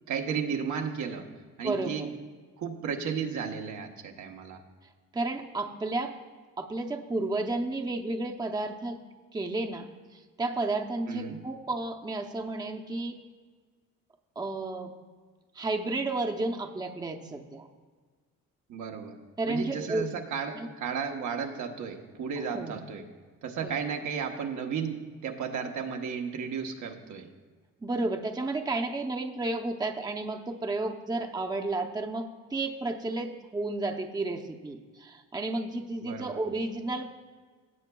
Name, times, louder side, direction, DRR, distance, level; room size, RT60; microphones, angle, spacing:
voice 1, 0.1-1.3 1.6-2.1 2.6-4.6 11.1-11.5 18.7-19.2 19.5-23.0 23.4-27.3 36.0-36.4, right 6 dB, 75° right, 3 dB, 1.0 m, -34 dB
voice 2, 1.6-2.1 5.1-6.1 6.6-9.0 9.3-9.9 10.1-13.1 14.4-14.9 15.5-17.7 19.4-20.0 20.5-20.7 22.5-22.8 23.6-23.8 27.8-37.1, right 2 dB, 15° right, 3 dB, 0.7 m, -32 dB
16.5 x 7.6 x 2.3 m, 1.5 s
cardioid pair, 90°, 30 cm